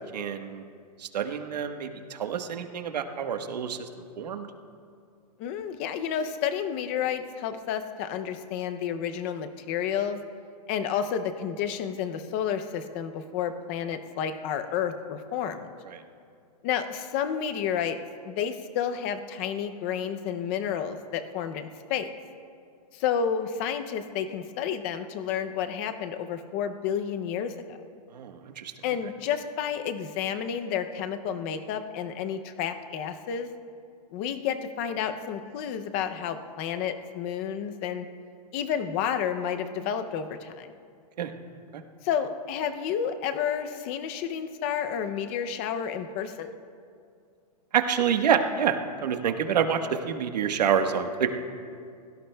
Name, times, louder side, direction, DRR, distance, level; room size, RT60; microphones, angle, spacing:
voice 1, 0.1-0.6 1.0-3.9 4.2-4.5 15.9-16.0 28.1-28.7 41.2-41.3 41.7-41.8 47.7-51.3, right 7 dB, 80° right, 6 dB, 1.3 m, -27 dB
voice 2, 5.4-10.2 10.7-15.7 16.6-18.0 18.2-22.1 22.9-27.8 28.8-33.5 34.1-38.1 38.5-40.7 42.0-46.5, left 8 dB, 20° left, 9 dB, 0.5 m, -30 dB
25.0 x 17.0 x 2.2 m, 2.3 s
hypercardioid pair, 175°, 21 cm